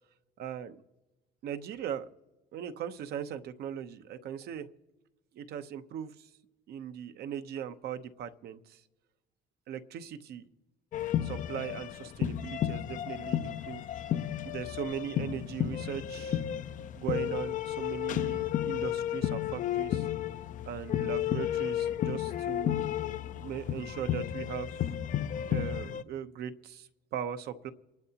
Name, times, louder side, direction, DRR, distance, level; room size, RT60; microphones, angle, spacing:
voice 1, 0.4-0.8 1.4-2.1 2.5-4.7 5.3-6.3 6.7-8.8 9.7-10.5 11.2-13.8 14.4-16.4 17.0-20.1 20.7-24.7 25.5-27.7, right 9 dB, 70° right, 10 dB, 0.9 m, -39 dB
sound 1, 10.9-26.0, left 11 dB, 50° left, 0.5 m, -32 dB
28.0 x 12.0 x 2.9 m, 1.1 s
cardioid pair, 110°, 17 cm